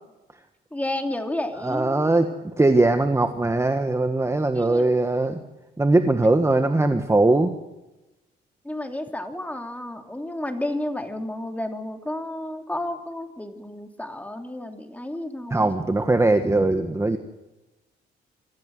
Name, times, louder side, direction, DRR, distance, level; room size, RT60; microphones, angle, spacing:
voice 1, 0.7-2.1 4.5-4.9 8.6-15.7, left 1 dB, 5° left, 5 dB, 3.2 m, -31 dB
voice 2, 1.6-2.3 2.6-5.4 5.8-7.5 15.5-17.2, right 2 dB, 15° right, 7 dB, 1.5 m, -20 dB
25.0 x 15.0 x 7.9 m, 1.0 s
cardioid pair, 90°, 20 cm